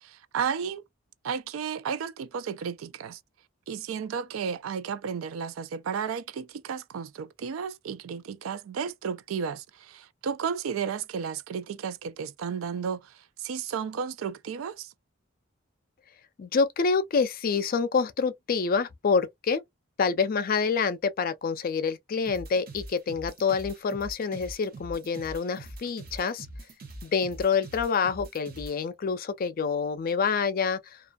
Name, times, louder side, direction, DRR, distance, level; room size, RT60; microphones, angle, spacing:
voice 1, 0.3-0.8 1.2-3.2 3.7-9.6 9.9-13.0 13.4-14.9, right 6 dB, 85° right, 0.3 m, -33 dB
voice 2, 16.4-19.6 20.0-26.5 27.0-31.0, left 5 dB, 45° left, 0.4 m, -27 dB
sound 1, 22.2-28.8, right 1 dB, 45° right, 0.7 m, -43 dB
2.5 x 2.3 x 2.2 m
head